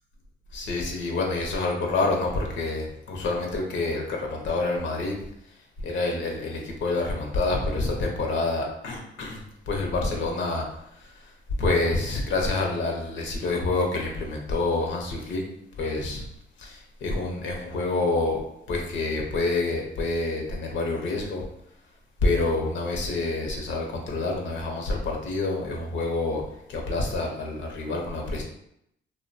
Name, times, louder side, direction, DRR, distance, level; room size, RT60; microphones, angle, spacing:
voice 1, 0.5-5.2 5.8-10.6 10.9-11.3 11.6-15.4 15.7-16.2 16.6-18.4 18.7-21.4 22.2-26.4 26.7-28.4, left 2 dB, 75° left, 1 dB, 0.6 m, -27 dB
2.6 x 2.1 x 2.5 m, 0.76 s
cardioid pair, 90°, 20 cm